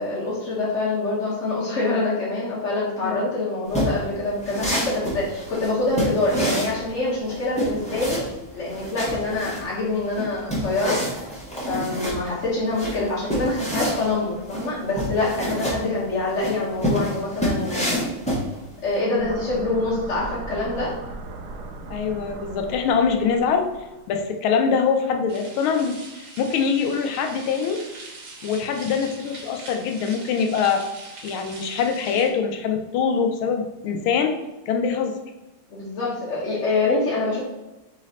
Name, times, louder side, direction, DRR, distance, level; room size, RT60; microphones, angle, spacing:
voice 1, 0.0-8.3 8.5-11.0 11.7-18.1 18.8-21.0 35.7-37.4, left 2 dB, 50° left, -7 dB, 0.9 m, -25 dB
sound 1, 3.7-18.9, equal, 5° left, 0.7 m, -28 dB
sound 2, 19.1-24.1, right 3 dB, 80° right, 1.4 m, -38 dB
voice 2, 21.9-23.7 24.1-27.8 28.4-30.8 31.2-34.3 34.7-35.1, left 6 dB, 80° left, 4 dB, 1.4 m, -23 dB
sound 3, 25.3-32.3, right 2 dB, 60° right, 1.7 m, -42 dB
4.0 x 3.2 x 4.0 m, 1.0 s
omnidirectional pair, 2.4 m